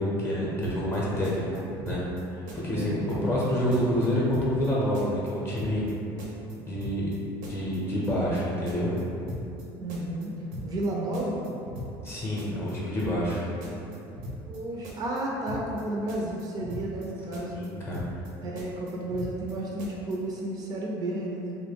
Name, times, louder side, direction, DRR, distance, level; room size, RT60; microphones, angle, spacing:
voice 1, 0.0-2.0 2.3-5.8 6.6-7.1 7.5-8.9 12.0-13.4 17.5-18.0, equal, 25° left, -7 dB, 0.6 m, -28 dB
sound 1, 0.6-1.0 1.2-2.2 2.5-2.8 3.1-3.5 3.7-4.7 4.9-5.3 5.6-5.9 6.2-7.2 7.4-7.8 8.0-8.4 8.7-9.6 9.9-10.3 10.5-10.9 11.1-12.1 12.4-12.7 13.0-13.4 13.6-14.6 14.8-15.2 15.5-15.8 16.1-17.1 17.3-17.7 17.9-18.3 18.6-19.5 19.8-20.2, equal, 85° right, 0.6 m, -40 dB
voice 2, 2.6-3.5 9.8-10.3 10.6-11.5 14.5-17.6 18.4-21.6, right 1 dB, 40° right, -3 dB, 0.4 m, -32 dB
2.2 x 2.0 x 3.4 m, 2.7 s
supercardioid pair, 110°, 10 cm